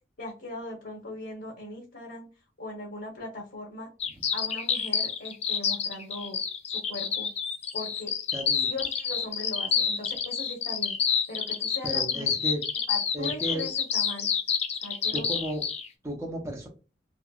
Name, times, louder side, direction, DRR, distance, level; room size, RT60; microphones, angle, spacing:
voice 1, 0.2-2.3 2.6-3.9 4.3-6.4 6.7-7.3 7.7-8.1 8.6-11.0 11.3-12.3 12.9-14.3 14.8-15.3, left 2 dB, 60° left, -1 dB, 1.0 m, -39 dB
sound 1, 4.0-15.9, left 7 dB, 35° left, 0.4 m, -28 dB
voice 2, 8.3-8.7 11.8-12.6 13.1-13.7 15.1-15.6 16.0-16.7, equal, 15° right, -1 dB, 0.6 m, -33 dB
2.9 x 2.8 x 2.3 m, 0.31 s
head